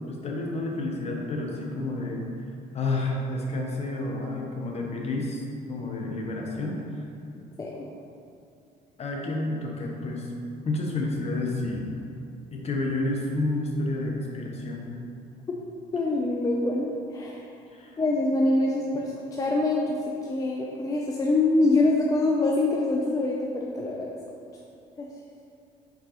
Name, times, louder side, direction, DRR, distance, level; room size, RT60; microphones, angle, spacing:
voice 1, 0.1-2.3 2.7-6.8 9.0-10.3 10.6-11.9 12.5-14.9 17.7-18.0, left 2 dB, 40° left, -1 dB, 0.7 m, -30 dB
voice 2, 7.6-7.9 15.5-15.6 15.9-17.4 18.0-20.0 20.3-24.1 25.0-25.1, left 2 dB, 20° left, -2 dB, 0.3 m, -25 dB
4.6 x 3.8 x 2.9 m, 2.6 s
cardioid pair, 110°, 17 cm